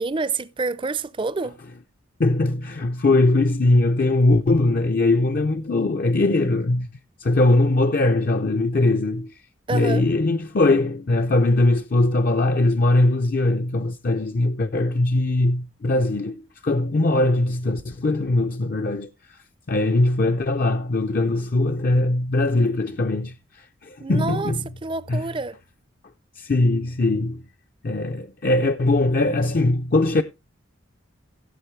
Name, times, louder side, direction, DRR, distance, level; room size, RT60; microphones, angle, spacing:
voice 1, 0.0-1.6 9.7-10.0 24.0-24.5 24.8-25.6, right 3 dB, 25° right, 0.5 m, -27 dB
voice 2, 2.2-6.9 7.2-9.4 9.7-24.6 25.1-25.3 26.4-27.4 27.8-30.2, left 2 dB, 45° left, 0.5 m, -21 dB
16.0 x 7.4 x 3.2 m
head